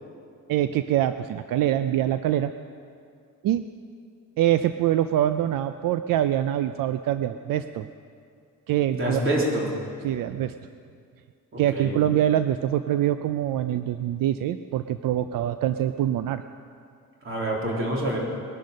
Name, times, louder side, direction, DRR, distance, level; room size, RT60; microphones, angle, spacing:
voice 1, 0.5-2.5 3.4-3.6 4.4-7.9 8.7-9.2 10.0-10.5 11.6-16.4, right 12 dB, 80° right, 10 dB, 0.6 m, -24 dB
voice 2, 8.9-9.7 11.7-12.0 17.2-18.2, right 1 dB, 40° right, -2 dB, 3.3 m, -26 dB
20.5 x 10.5 x 6.4 m, 2.3 s
cardioid pair, 170°, 33 cm